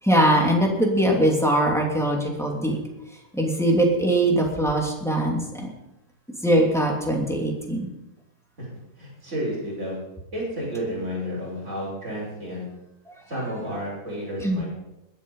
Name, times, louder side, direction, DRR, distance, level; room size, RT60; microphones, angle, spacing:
voice 1, 0.0-2.8 3.1-5.7 6.4-7.9 13.1-13.2 14.4-14.7, right 1 dB, ahead, -1 dB, 2.7 m, -22 dB
voice 2, 9.0-10.0 10.3-12.6 13.3-14.7, equal, 45° right, -7 dB, 6.4 m, -31 dB
21.0 x 7.5 x 5.6 m, 0.93 s
omnidirectional pair, 1.7 m